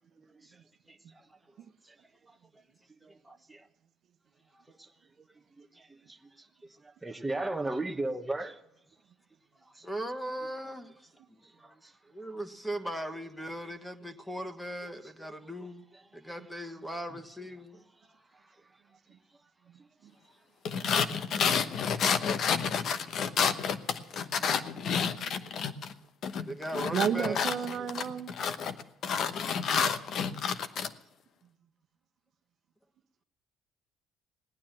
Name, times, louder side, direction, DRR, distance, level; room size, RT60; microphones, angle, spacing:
voice 1, 0.1-0.6 0.9-1.4 1.8-2.0 2.2-2.6 3.0-3.7 4.5-4.9 5.3-8.6 9.7-9.9 11.4-12.0 15.9-16.0 18.0-18.6 19.3-19.4 19.8-19.9 21.3-21.5 22.9-23.0 24.4-25.0, right 2 dB, 10° right, 1.1 m, -39 dB
voice 2, 9.8-11.8 12.1-15.8 16.1-17.8 26.5-27.4 27.8-27.9, right 1 dB, 5° left, 1.5 m, -39 dB
sound 1, 20.6-25.9 26.2-30.9, left 6 dB, 60° left, 1.0 m, -29 dB
voice 3, 24.4-24.8 26.9-28.3, right 9 dB, 60° right, 0.9 m, -32 dB
18.5 x 9.8 x 7.5 m
cardioid pair, 100°, 0 cm